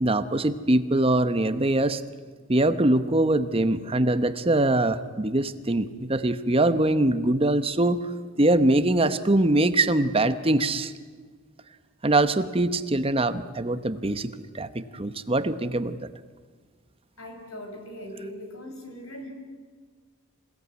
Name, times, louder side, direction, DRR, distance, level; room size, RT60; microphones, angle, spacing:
voice 1, 0.0-2.0 2.5-8.1 8.4-10.9 12.0-14.3 14.5-16.1, right 2 dB, 25° right, 11 dB, 0.9 m, -23 dB
voice 2, 17.2-19.3, equal, 80° left, 4 dB, 5.9 m, -40 dB
27.5 x 17.0 x 9.6 m, 1.5 s
head